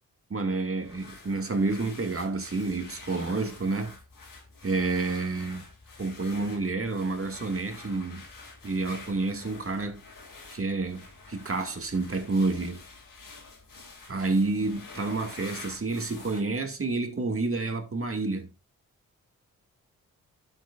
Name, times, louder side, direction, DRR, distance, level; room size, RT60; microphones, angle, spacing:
voice 1, 0.3-3.9 4.6-5.6 6.0-8.2 8.6-10.0 10.5-12.8 14.1-18.5, right 3 dB, 40° right, 2.2 m, -29 dB
sound 1, 0.8-16.4, left 3 dB, 60° left, 3.1 m, -48 dB
12.0 x 6.4 x 2.5 m
supercardioid pair, 40°, 36 cm